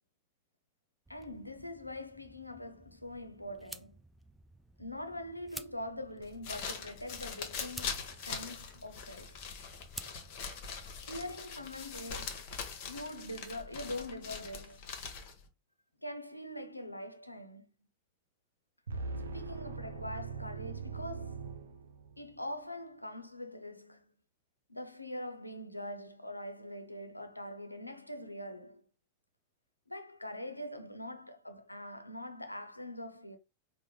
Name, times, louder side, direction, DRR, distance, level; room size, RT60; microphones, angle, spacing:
voice 1, 1.1-4.0 4.8-9.4 11.0-12.6 12.9-14.9 16.0-17.7 19.3-21.5 22.2-24.1 24.7-28.9 29.9-33.4, left 1 dB, 85° left, 0.5 m, -43 dB
sound 1, 1.1-11.4, right 2 dB, 5° right, 0.3 m, -53 dB
sound 2, 6.2-15.5, left 6 dB, 45° left, 0.8 m, -42 dB
sound 3, 18.9-22.3, right 4 dB, 70° right, 0.5 m, -41 dB
4.3 x 2.1 x 3.2 m
figure-of-eight pair, 90°, 0 cm